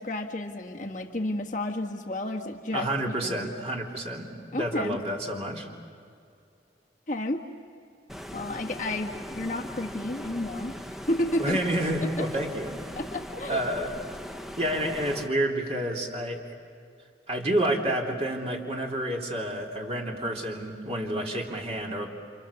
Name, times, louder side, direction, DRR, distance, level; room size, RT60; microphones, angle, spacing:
voice 1, 0.0-3.5 4.5-5.0 7.1-7.4 8.3-11.6 12.9-13.6, left 1 dB, 45° left, 1 dB, 1.6 m, -31 dB
voice 2, 2.7-5.7 11.4-12.8 13.5-13.9 14.6-16.5 17.3-22.1, right 1 dB, 35° right, -1 dB, 3.1 m, -29 dB
Stream, 8.1-15.3, equal, ahead, 0.7 m, -40 dB
29.5 x 27.0 x 7.1 m, 2.4 s
head